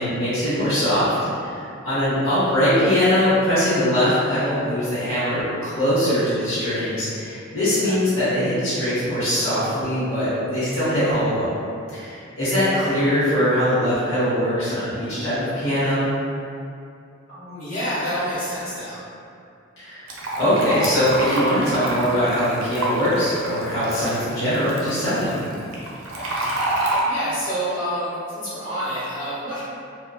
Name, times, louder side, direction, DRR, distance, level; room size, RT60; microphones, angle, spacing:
voice 1, 0.0-11.5 11.9-16.1 19.8-20.1 20.4-25.3, equal, 75° left, -13 dB, 0.9 m, -22 dB
voice 2, 17.3-19.0 25.3-25.5 27.0-29.6, equal, 40° left, -12 dB, 1.1 m, -28 dB
Fill (with liquid), 20.1-27.0, right 1 dB, 80° right, 0.4 m, -28 dB
2.5 x 2.1 x 2.3 m, 2.5 s
head